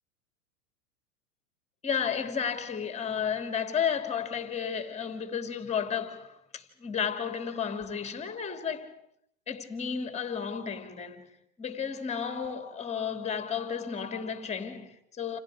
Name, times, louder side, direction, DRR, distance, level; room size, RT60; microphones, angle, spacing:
voice 1, 1.8-8.9 9.5-11.3 11.6-15.4, left 7 dB, 15° left, 2.8 m, -33 dB
29.5 x 28.5 x 5.0 m
hypercardioid pair, 120°, 42 cm